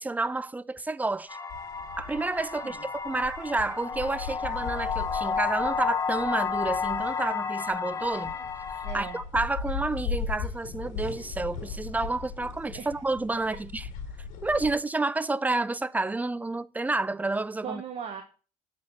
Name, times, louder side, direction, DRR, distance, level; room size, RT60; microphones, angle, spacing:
voice 1, 0.0-1.4 2.0-8.3 8.9-13.8 14.4-17.8, right 2 dB, 10° right, 0.4 m, -30 dB
sound 1, 1.3-9.2, left 6 dB, 25° left, 1.1 m, -32 dB
sound 2, 1.5-14.7, left 5 dB, 75° left, 2.5 m, -38 dB
voice 2, 2.4-2.9 8.8-9.2 12.7-13.0 14.6-14.7 17.6-18.2, right 7 dB, 50° right, 1.2 m, -39 dB
8.2 x 4.8 x 4.1 m
supercardioid pair, 85°, 14 cm